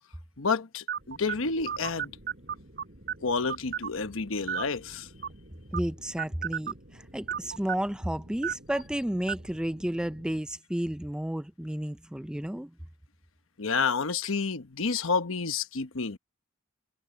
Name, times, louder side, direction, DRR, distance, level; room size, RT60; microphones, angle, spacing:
voice 1, 0.4-2.1 3.2-5.1 13.6-16.2, left 4 dB, 80° left, 1.1 m, -29 dB
sound 1, 0.9-10.4, right 8 dB, 55° right, 4.7 m, -38 dB
voice 2, 5.7-12.7, right 1 dB, 5° right, 0.4 m, -32 dB
head